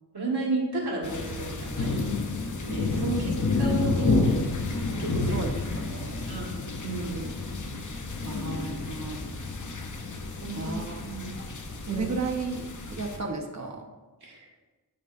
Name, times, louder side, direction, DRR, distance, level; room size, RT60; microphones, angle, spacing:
voice 1, 0.1-2.0 2.6-3.3 3.6-4.3 4.9-5.4 6.3-7.4 8.1-8.4 10.4-11.3 11.9-12.1 14.2-14.5, right 2 dB, 75° right, -4 dB, 1.8 m, -32 dB
sound 1, 1.0-13.2, left 3 dB, 50° left, 0.7 m, -30 dB
voice 2, 5.3-6.4 8.2-9.2 10.5-11.0 11.8-12.7 13.0-13.8, right 3 dB, 45° right, 2 dB, 1.0 m, -34 dB
8.5 x 5.2 x 2.6 m, 1.3 s
wide cardioid pair, 70°, 39 cm